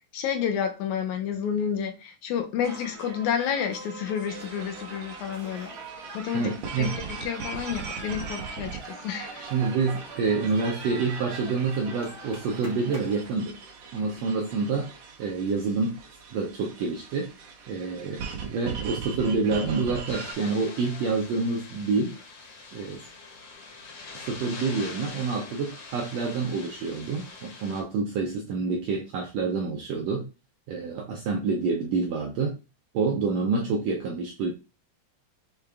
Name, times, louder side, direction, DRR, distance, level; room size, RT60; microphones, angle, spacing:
voice 1, 0.1-5.7 6.1-9.4, left 8 dB, 80° left, 1.9 m, -30 dB
sound 1, 2.6-13.3, right 1 dB, 45° right, 0.9 m, -44 dB
sound 2, 4.3-20.3, right 5 dB, 65° right, 2.1 m, -40 dB
voice 2, 6.3-7.0 9.4-13.6 13.9-14.9 15.2-16.0 16.3-17.3 17.7-22.2 22.7-23.0 24.2-30.3 30.7-32.6 32.9-34.5, right 4 dB, 80° right, 1.5 m, -27 dB
sound 3, 20.1-27.8, left 3 dB, 55° left, 1.8 m, -43 dB
6.5 x 2.4 x 3.4 m
omnidirectional pair, 3.7 m